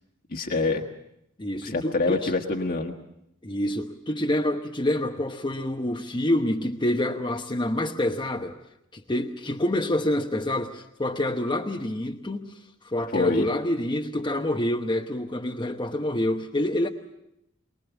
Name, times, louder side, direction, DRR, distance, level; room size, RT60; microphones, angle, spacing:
voice 1, 0.3-0.8 1.6-2.9 13.1-13.5, left 3 dB, 45° left, 2 dB, 1.5 m, -25 dB
voice 2, 1.4-2.3 3.4-8.5 8.9-16.9, left 1 dB, 20° left, 2 dB, 1.0 m, -27 dB
24.0 x 20.0 x 7.1 m, 0.80 s
head